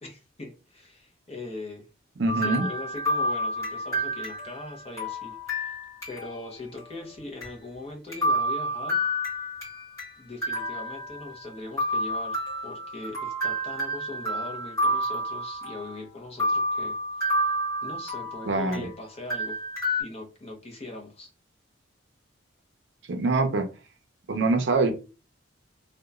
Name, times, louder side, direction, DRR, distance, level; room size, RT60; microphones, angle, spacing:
voice 1, 0.0-1.9 2.4-5.8 6.1-9.0 10.2-17.5 17.8-19.6 20.0-21.3, left 2 dB, 30° left, 0.6 m, -40 dB
voice 2, 2.2-2.7 18.4-18.9 23.1-23.7 24.3-24.9, right 3 dB, 60° right, 0.5 m, -24 dB
sound 1, 2.3-6.5 6.8-6.9 7.4-7.5 8.1-10.1 10.4-11.5 11.8-16.0 16.4-18.9 19.3-20.0, equal, 15° left, 1.4 m, -29 dB
2.9 x 2.1 x 2.3 m
head